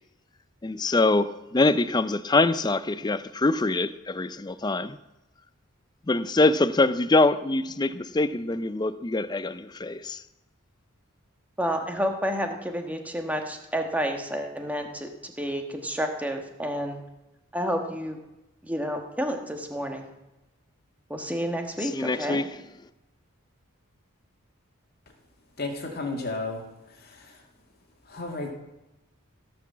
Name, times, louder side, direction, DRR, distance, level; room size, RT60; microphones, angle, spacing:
voice 1, 0.6-5.0 6.1-10.2 21.8-22.5, left 2 dB, 20° left, 0.4 m, -24 dB
voice 2, 11.6-17.0 17.5-18.2 18.6-20.1 21.1-22.4, equal, 5° right, 1.3 m, -30 dB
voice 3, 25.6-26.6 28.1-28.5, left 2 dB, 45° left, 2.2 m, -32 dB
16.5 x 6.1 x 7.2 m
head